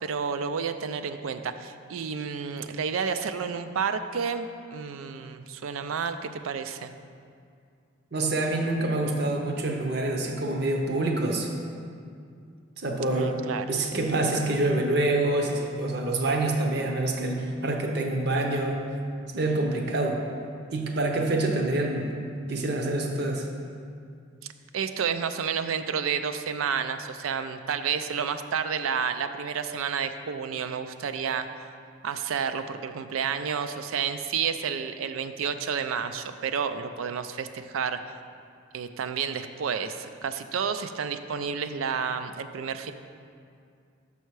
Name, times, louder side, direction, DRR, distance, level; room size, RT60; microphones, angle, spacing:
voice 1, 0.0-6.9 13.1-13.9 24.4-31.5 32.0-38.0 38.7-42.9, right 6 dB, 85° right, 9 dB, 0.4 m, -30 dB
voice 2, 8.1-11.5 12.8-18.8 19.3-20.2 20.7-22.1 22.5-23.5, right 2 dB, 50° right, 2 dB, 0.7 m, -26 dB
6.5 x 5.6 x 4.7 m, 2.3 s
head